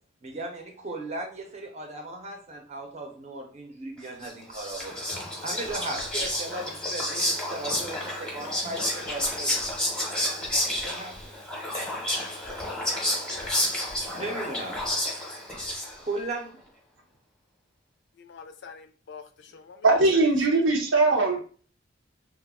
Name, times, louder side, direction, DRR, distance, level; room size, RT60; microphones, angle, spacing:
voice 1, 0.2-9.6 10.7-11.5 13.2-13.3 14.1-15.4 16.0-16.6, right 2 dB, 35° right, 2 dB, 0.6 m, -37 dB
Whispering, 4.2-16.2, left 1 dB, 5° left, 0.7 m, -30 dB
voice 2, 18.2-19.8 20.1-20.2, left 5 dB, 60° left, 9 dB, 0.4 m, -45 dB
voice 3, 19.8-21.4, right 3 dB, 90° right, 1 dB, 0.8 m, -20 dB
2.3 x 2.2 x 3.5 m, 0.41 s
head